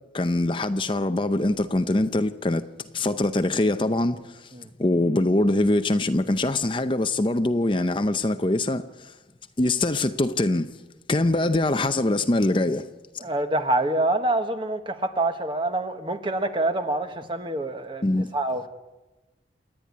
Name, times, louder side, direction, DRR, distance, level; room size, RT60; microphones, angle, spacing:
voice 1, 0.1-2.6 2.9-4.5 4.8-9.1 9.6-10.7 11.1-12.9 18.0-18.3, left 2 dB, 30° left, 0.6 m, -23 dB
voice 2, 13.2-18.0 18.3-18.7, right 2 dB, 30° right, 1.3 m, -26 dB
28.0 x 10.0 x 9.5 m
head